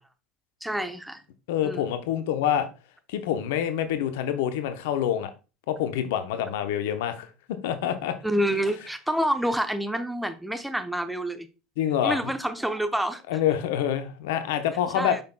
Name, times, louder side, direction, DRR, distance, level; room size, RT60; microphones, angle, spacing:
voice 1, 0.6-1.2 1.6-1.8 8.2-11.5 12.0-13.2 14.9-15.2, right 1 dB, 5° right, 0.8 m, -27 dB
voice 2, 1.5-2.7 3.1-5.3 5.7-8.2 11.8-12.3 13.3-15.2, left 10 dB, 65° left, 0.8 m, -26 dB
8.7 x 5.9 x 2.2 m
figure-of-eight pair, 75°, 0 cm